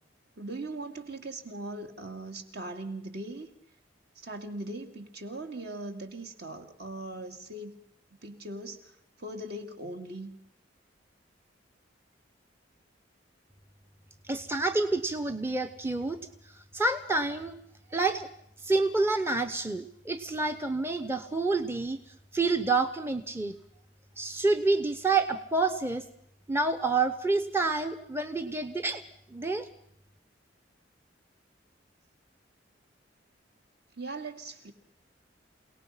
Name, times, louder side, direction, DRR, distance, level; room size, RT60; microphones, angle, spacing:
voice 1, 0.4-3.5 4.2-7.7 8.2-10.3 33.9-34.7, right 2 dB, 55° right, 5 dB, 2.3 m, -40 dB
voice 2, 14.2-16.2 16.5-17.5 17.9-18.3 18.6-22.0 22.3-23.6 24.2-26.1 26.5-29.0 29.3-29.7, right 3 dB, 10° right, 9 dB, 0.9 m, -28 dB
28.5 x 18.5 x 5.7 m, 0.71 s
head